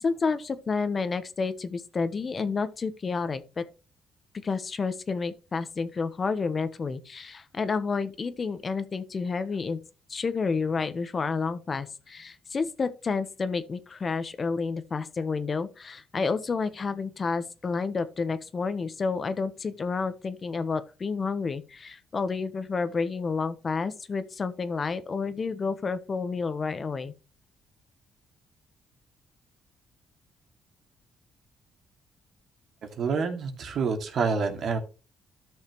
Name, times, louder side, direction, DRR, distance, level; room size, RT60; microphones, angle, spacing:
voice 1, 0.0-3.6 4.4-9.8 10.1-27.1, left 4 dB, 40° left, 1.0 m, -30 dB
voice 2, 33.0-34.8, right 5 dB, 65° right, 2.3 m, -27 dB
13.0 x 6.5 x 3.1 m
cardioid pair, 90°, 0 cm